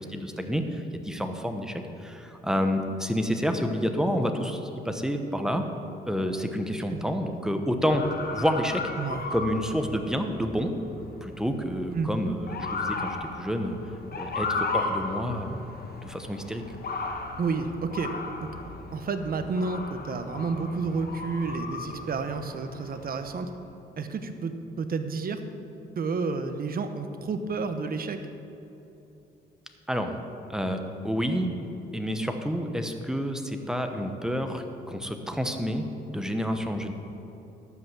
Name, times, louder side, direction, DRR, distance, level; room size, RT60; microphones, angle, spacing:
voice 1, 0.1-4.6 4.8-5.6 6.0-8.0 8.3-8.8 9.3-10.7 11.2-13.8 14.1-15.7 16.0-16.6 29.9-30.2 30.5-31.5 31.9-36.9, equal, 5° right, 6 dB, 1.0 m, -29 dB
Motor vehicle (road) / Siren, 7.9-23.5, left 3 dB, 50° left, 1.3 m, -36 dB
voice 2, 17.4-18.1 18.4-18.5 18.9-23.5 24.0-25.4 26.0-28.2, right 4 dB, 50° right, 8 dB, 1.0 m, -30 dB
12.0 x 5.6 x 7.5 m, 2.9 s
cardioid pair, 90°, 20 cm